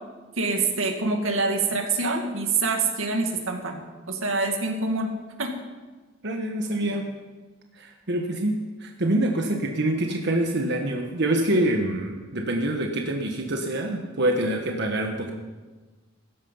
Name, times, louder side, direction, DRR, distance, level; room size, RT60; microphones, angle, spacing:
voice 1, 0.4-3.8 4.1-5.1 5.4-5.5, right 3 dB, 85° right, 4 dB, 2.1 m, -25 dB
voice 2, 6.2-7.0 7.8-8.5 8.8-15.3, right 1 dB, 60° right, 2 dB, 1.4 m, -25 dB
16.0 x 14.0 x 5.6 m, 1.3 s
head